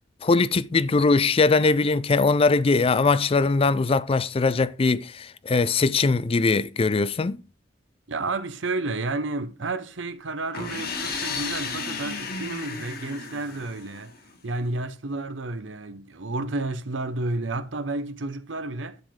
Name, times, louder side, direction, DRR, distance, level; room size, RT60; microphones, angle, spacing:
voice 1, 0.2-7.4, left 3 dB, 30° left, 0.4 m, -21 dB
voice 2, 8.1-14.1 14.4-19.0, right 2 dB, 80° right, 0.9 m, -31 dB
sound 1, 10.5-14.3, left 4 dB, 55° left, 1.9 m, -33 dB
10.5 x 7.1 x 3.7 m
head